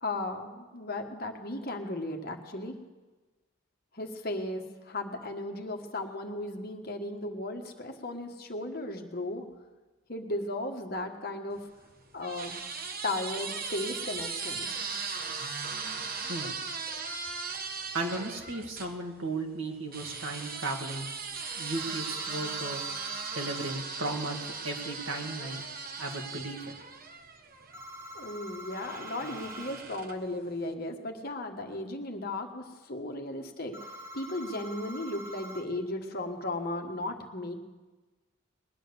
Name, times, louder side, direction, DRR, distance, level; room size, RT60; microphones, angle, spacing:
voice 1, 0.0-2.7 3.9-9.4 10.1-11.7 12.1-12.6 13.0-14.7 28.1-37.6, left 2 dB, 45° left, 4 dB, 1.4 m, -36 dB
sound 1, 11.6-18.9 19.9-27.8 28.7-30.3, right 5 dB, 45° right, 1.1 m, -38 dB
voice 2, 17.9-21.1 21.6-22.8 23.3-24.4 24.6-25.7 26.0-26.7, right 2 dB, 70° right, 2 dB, 2.1 m, -35 dB
sound 2, 21.7-23.8 27.7-29.8 33.7-35.6, equal, 15° right, 1.3 m, -44 dB
20.5 x 10.0 x 6.9 m, 1.2 s
head